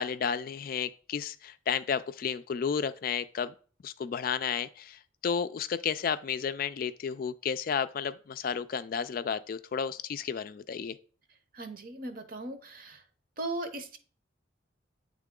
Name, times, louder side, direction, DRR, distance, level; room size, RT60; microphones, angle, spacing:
voice 1, 0.0-3.5 3.8-11.0, left 7 dB, 45° left, 0.3 m, -32 dB
voice 2, 11.5-13.0 13.4-14.0, right 2 dB, 45° right, 0.9 m, -38 dB
9.1 x 3.6 x 3.7 m
head